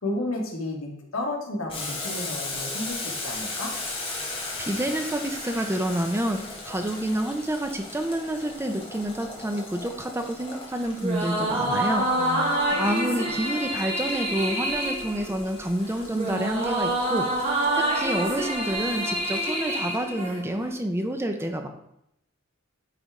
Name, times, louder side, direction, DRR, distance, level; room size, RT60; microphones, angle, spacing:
voice 1, 0.0-3.7 12.1-12.5, left 2 dB, 80° left, 0 dB, 1.4 m, -32 dB
Boiling, 1.7-20.1, left 2 dB, 25° left, 1.5 m, -38 dB
voice 2, 4.6-12.1 12.8-17.3 17.7-21.7, right 1 dB, 10° right, 5 dB, 0.5 m, -28 dB
sound 1, 11.0-20.7, right 1 dB, 35° right, 1.6 m, -27 dB
9.1 x 3.4 x 3.6 m, 0.78 s
head